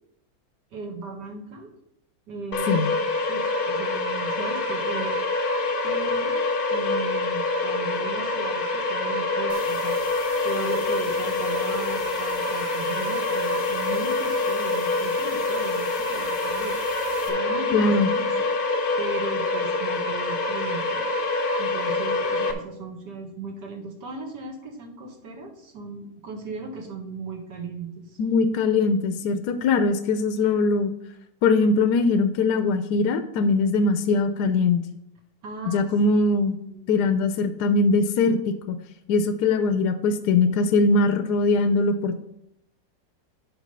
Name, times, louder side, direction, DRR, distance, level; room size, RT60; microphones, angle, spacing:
voice 1, 0.7-1.7 2.3-2.7 3.2-5.2 5.8-21.0 21.6-28.2 35.4-36.9, right 3 dB, 65° right, 3 dB, 1.9 m, -37 dB
sound 1, 2.5-22.5, left 2 dB, 50° left, 0.6 m, -26 dB
Channel Noise, 9.5-17.3, right 1 dB, 20° right, 1.3 m, -44 dB
voice 2, 17.7-18.1 28.2-30.9 31.4-34.9 35.7-36.6 36.9-38.8 39.1-42.2, left 3 dB, 70° left, 8 dB, 1.1 m, -21 dB
8.2 x 4.9 x 5.5 m, 0.79 s
omnidirectional pair, 2.0 m